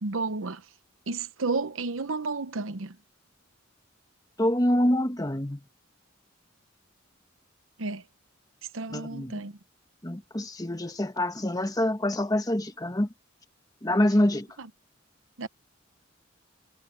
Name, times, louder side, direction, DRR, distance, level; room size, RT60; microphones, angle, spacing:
voice 1, 0.0-0.6 1.1-3.0 7.8-8.0 8.7-9.5 14.6-14.7 15.4-15.5, right 3 dB, 85° right, 0.9 m, -31 dB
voice 2, 4.4-5.6 8.9-9.4 10.0-13.1 13.8-14.5, left 1 dB, 20° left, 1.3 m, -26 dB
head